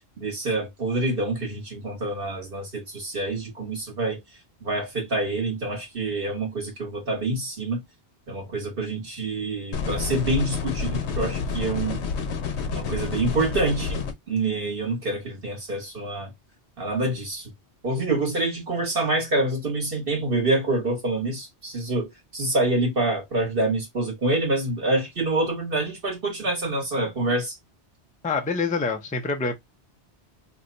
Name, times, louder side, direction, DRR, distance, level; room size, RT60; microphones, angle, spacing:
voice 1, 0.2-4.2 4.6-7.8 8.3-12.0 12.7-14.0 14.3-16.3 16.8-17.5 17.8-27.6, right 2 dB, 55° right, 1.4 m, -26 dB
sound 1, 9.7-14.1, left 5 dB, 80° left, 0.9 m, -29 dB
voice 2, 28.2-29.5, left 4 dB, 15° left, 0.3 m, -26 dB
2.8 x 2.2 x 3.8 m
omnidirectional pair, 1.1 m